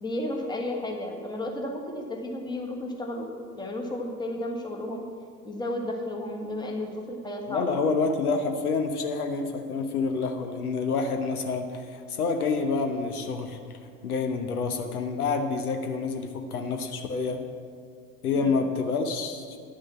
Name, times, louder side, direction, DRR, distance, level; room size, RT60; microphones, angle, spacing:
voice 1, 0.0-3.3 3.6-5.0 5.4-7.8 18.3-18.5, left 1 dB, 10° left, 0 dB, 1.4 m, -33 dB
voice 2, 7.5-13.8 14.0-17.4 18.2-19.5, left 4 dB, 70° left, 5 dB, 1.0 m, -28 dB
10.0 x 6.3 x 7.4 m, 2.1 s
figure-of-eight pair, 75°, 47 cm